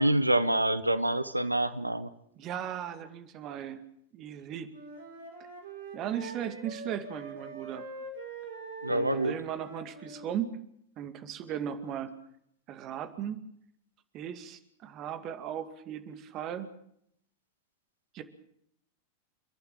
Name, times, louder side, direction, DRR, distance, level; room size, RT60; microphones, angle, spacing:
voice 1, 0.0-2.1 8.8-9.3, right 1 dB, 85° right, 14 dB, 0.8 m, -26 dB
voice 2, 2.4-3.8 4.1-4.7 5.9-7.8 8.9-10.6 11.0-12.1 12.7-13.4 14.1-16.7 18.1-18.2, right 9 dB, 35° right, 9 dB, 2.2 m, -37 dB
Wind instrument woodwind instrument, 4.7-10.3, right 3 dB, 65° right, 5.5 m, -43 dB
29.5 x 11.5 x 8.9 m, 0.72 s
figure-of-eight pair, 90°, 0 cm